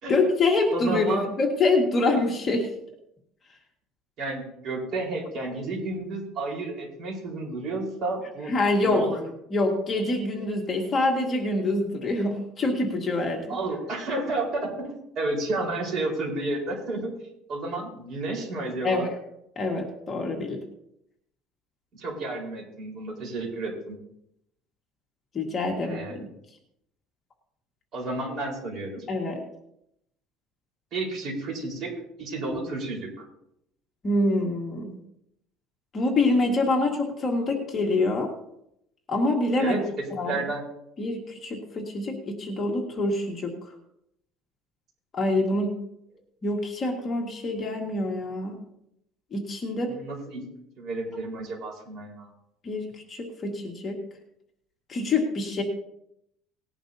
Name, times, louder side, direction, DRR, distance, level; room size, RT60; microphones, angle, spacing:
voice 1, 0.1-2.7 8.5-9.1 9.5-13.6 18.8-19.1 19.6-20.6 25.3-26.2 29.1-29.4 34.0-35.0 35.9-38.3 39.1-39.8 40.1-40.4 41.0-43.5 45.1-45.7 46.4-48.6 49.3-49.9 52.6-54.0 54.9-55.6, left 2 dB, 25° left, 0 dB, 1.8 m, -25 dB
voice 2, 0.7-1.3 4.2-8.5 8.8-9.2 13.5-17.1 17.5-19.1 22.0-24.0 25.8-26.3 27.9-29.1 30.9-31.9 32.2-33.2 39.6-40.7 49.9-50.5 50.8-52.3, right 2 dB, 45° right, -1 dB, 4.4 m, -31 dB
19.5 x 11.0 x 2.8 m, 0.78 s
cardioid pair, 165°, 0 cm